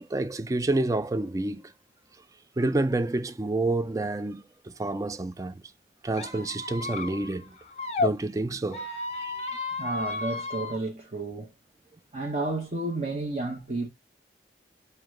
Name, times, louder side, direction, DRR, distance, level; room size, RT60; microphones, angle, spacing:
voice 1, 0.0-1.6 2.6-4.4 4.8-5.5 6.0-7.5 8.0-8.9 9.2-9.5, right 2 dB, 20° right, 0.3 m, -28 dB
Squeak, 6.1-8.1 8.7-10.8, left 3 dB, 35° left, 0.6 m, -33 dB
voice 2, 9.8-11.5 12.1-13.9, right 2 dB, 40° right, 0.8 m, -31 dB
4.8 x 2.2 x 3.6 m
head